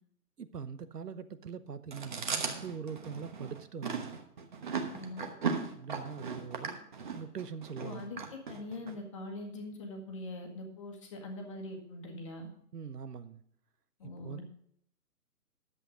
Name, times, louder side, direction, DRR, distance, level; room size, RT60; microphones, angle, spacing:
voice 1, 0.4-4.2 5.7-6.8 7.1-8.2 12.7-13.4 14.0-14.4, right 6 dB, 80° right, 1.1 m, -43 dB
Chewing mastication, 1.9-8.9, right 5 dB, 30° right, 1.1 m, -37 dB
voice 2, 4.9-5.3 7.8-8.2 8.5-12.5 14.0-14.4, left 2 dB, 20° left, 1.4 m, -42 dB
11.0 x 7.8 x 5.0 m
hypercardioid pair, 165°, 46 cm